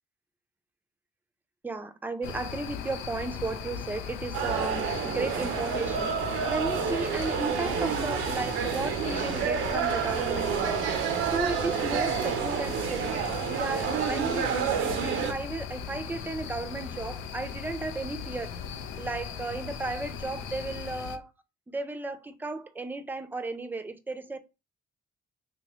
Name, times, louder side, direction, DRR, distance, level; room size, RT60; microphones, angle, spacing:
voice 1, 1.6-6.1 6.5-10.8 11.2-18.6 19.0-21.3 21.7-24.4, right 3 dB, 10° right, 0.5 m, -34 dB
sound 1, 2.2-21.2, left 7 dB, 85° left, 0.5 m, -38 dB
sound 2, 4.3-15.3, right 7 dB, 90° right, 0.6 m, -29 dB
3.4 x 2.9 x 3.0 m
cardioid pair, 90°, 20 cm